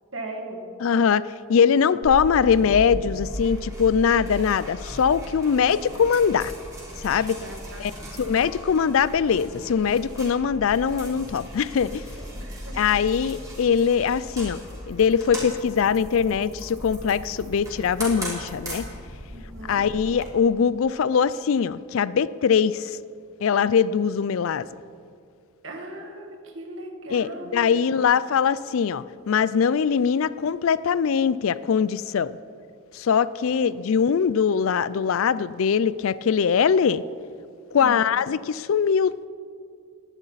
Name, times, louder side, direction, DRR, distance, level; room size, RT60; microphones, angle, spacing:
voice 1, 0.1-0.7 7.4-7.9 11.9-13.0 19.3-19.8 25.6-28.1 33.5-34.0 37.8-38.2, right 1 dB, 60° right, 1 dB, 2.1 m, -39 dB
voice 2, 0.8-6.5 7.0-7.4 7.8-7.9 8.2-12.0 12.7-14.6 14.9-18.8 19.7-22.9 23.4-24.7 27.1-32.4 32.9-37.0 37.7-39.3, left 6 dB, 70° left, 18 dB, 0.4 m, -22 dB
sound 1, 2.0-20.3, equal, 15° right, 3.8 m, -37 dB
19.0 x 11.0 x 4.1 m, 2.3 s
head